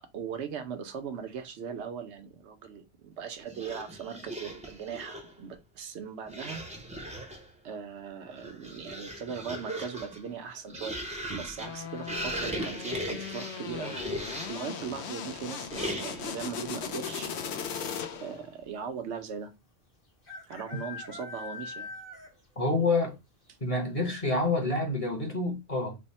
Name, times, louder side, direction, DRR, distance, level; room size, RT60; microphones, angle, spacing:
voice 1, 0.1-6.6 7.6-11.0 11.3-14.0 14.5-17.3 18.2-19.5 20.5-21.9, right 7 dB, 90° right, 1.0 m, -39 dB
sound 1, 3.5-5.4 6.3-7.5 8.2-14.7 15.7-16.4, equal, 10° right, 0.5 m, -38 dB
sound 2, 11.6-18.5, left 7 dB, 80° left, 0.9 m, -38 dB
sound 3, 12.7-13.2 15.0-15.4 15.6-15.7 16.0-16.5 17.3-17.4 17.6-17.7 19.2-19.3 20.2-22.5 22.9-23.0 23.5-23.6 24.0-24.1, left 4 dB, 55° left, 1.5 m, -43 dB
voice 2, 22.6-23.2 23.6-26.0, left 2 dB, 35° left, 1.0 m, -28 dB
3.4 x 2.1 x 4.0 m
omnidirectional pair, 1.1 m